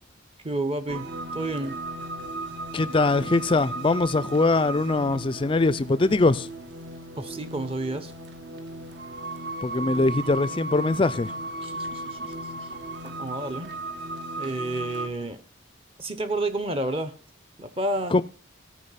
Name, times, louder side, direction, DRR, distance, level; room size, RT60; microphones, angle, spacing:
voice 1, 0.4-1.1 1.3-1.8 7.2-8.1 11.6-12.3 12.7-12.8 13.2-13.7 14.4-15.4 16.0-17.1 17.6-18.2, right 2 dB, 30° right, 0.8 m, -30 dB
sound 1, 0.9-15.1, right 2 dB, 60° right, 1.2 m, -36 dB
voice 2, 2.7-6.5 9.6-11.3 18.1-18.2, left 3 dB, 25° left, 0.4 m, -22 dB
13.0 x 4.9 x 5.7 m
head